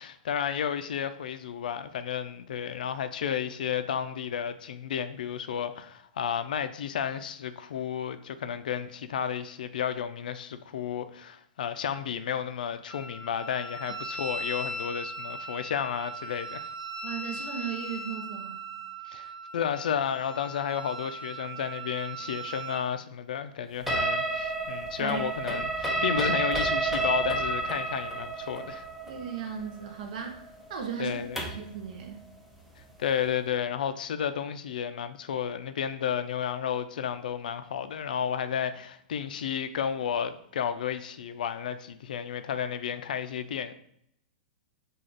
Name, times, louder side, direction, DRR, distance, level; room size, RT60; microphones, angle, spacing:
voice 1, 0.0-16.7 19.1-28.9 31.0-31.4 33.0-43.7, left 8 dB, 80° left, 0.3 m, -32 dB
Wind instrument woodwind instrument, 12.9-22.8, right 1 dB, 20° right, 0.9 m, -39 dB
voice 2, 17.0-18.6 25.0-25.2 29.1-30.4 30.7-32.3, right 7 dB, 60° right, 0.5 m, -36 dB
sound 1, 23.9-31.7, right 2 dB, 5° right, 0.5 m, -30 dB
3.2 x 2.3 x 3.9 m
hypercardioid pair, 145°, 5 cm